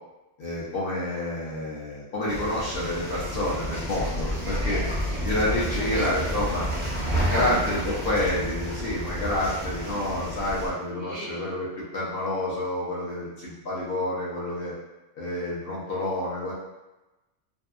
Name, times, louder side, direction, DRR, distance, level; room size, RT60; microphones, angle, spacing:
voice 1, 0.4-4.8 5.2-6.7 7.3-14.7 15.2-16.5, left 1 dB, 55° left, -7 dB, 0.8 m, -28 dB
sound 1, 2.3-10.7, equal, 15° right, 0.4 m, -30 dB
voice 2, 4.4-5.2 5.5-6.3 6.7-7.5 10.9-11.4, right 1 dB, 65° right, -4 dB, 0.7 m, -37 dB
2.6 x 2.2 x 2.4 m, 1.0 s
omnidirectional pair, 1.3 m